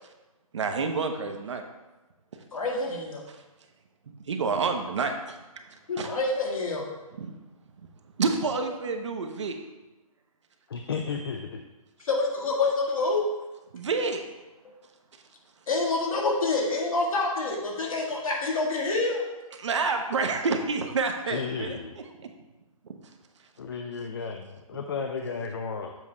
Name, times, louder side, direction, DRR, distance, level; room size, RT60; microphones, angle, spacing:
voice 1, 0.5-1.6 3.3-3.4 4.1-5.1 6.0-6.1 7.2-7.3 8.2-9.6 13.7-14.2 19.6-21.8 22.2-22.3 22.8-22.9, right 4 dB, 55° right, 5 dB, 0.8 m, -28 dB
voice 2, 2.5-3.2 5.9-6.8 12.1-13.2 15.7-19.2, left 3 dB, 65° left, -2 dB, 2.0 m, -27 dB
voice 3, 10.7-11.6 21.2-22.0 23.6-26.0, left 5 dB, 40° left, 5 dB, 0.4 m, -33 dB
7.4 x 3.5 x 5.3 m, 1.1 s
hypercardioid pair, 170°, 19 cm